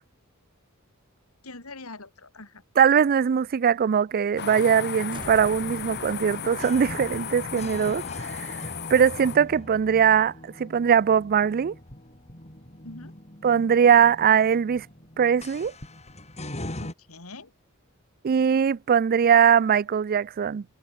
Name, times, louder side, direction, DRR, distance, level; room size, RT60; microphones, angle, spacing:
voice 1, 1.4-2.6 12.8-13.2 16.8-17.5, left 2 dB, 75° left, 3.8 m, -43 dB
voice 2, 2.8-8.6 8.9-11.7 13.4-14.9 15.2-15.7 18.2-20.6, right 7 dB, 40° right, 0.3 m, -21 dB
sound 1, 4.4-9.4, left 7 dB, 50° left, 1.3 m, -35 dB
sound 2, 5.1-11.4, right 1 dB, 25° right, 7.1 m, -51 dB
sound 3, 5.2-16.9, left 1 dB, 30° left, 7.7 m, -42 dB
head